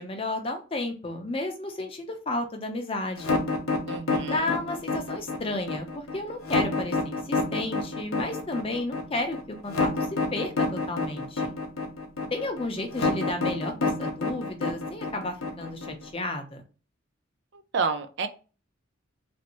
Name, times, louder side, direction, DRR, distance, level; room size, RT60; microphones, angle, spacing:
voice 1, 0.0-3.4 4.3-11.5 12.3-16.6, left 2 dB, 25° left, 4 dB, 0.6 m, -32 dB
sound 1, 3.2-16.1, left 3 dB, 85° left, 0.8 m, -28 dB
voice 2, 3.8-4.5 17.5-18.3, right 5 dB, 60° right, 10 dB, 0.4 m, -30 dB
3.1 x 2.6 x 2.9 m, 0.35 s
head